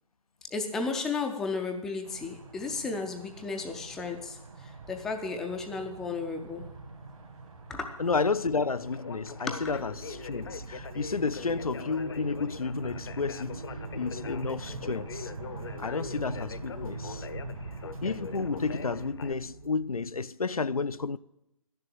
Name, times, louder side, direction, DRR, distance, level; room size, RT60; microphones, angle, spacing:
voice 1, 0.5-4.4 4.6-6.7 7.7-8.0 9.5-9.8, left 4 dB, 5° left, 0.3 m, -34 dB
sound 1, 2.0-19.1, right 3 dB, 65° right, 2.0 m, -44 dB
voice 2, 8.0-13.6 13.9-15.3 15.8-17.3 18.0-21.2, left 4 dB, 90° left, 0.4 m, -31 dB
Conversation, 8.8-19.3, left 6 dB, 50° left, 0.6 m, -43 dB
sound 2, 9.6-19.7, right 3 dB, 80° right, 1.6 m, -48 dB
10.5 x 6.8 x 8.7 m
figure-of-eight pair, 135°, 18 cm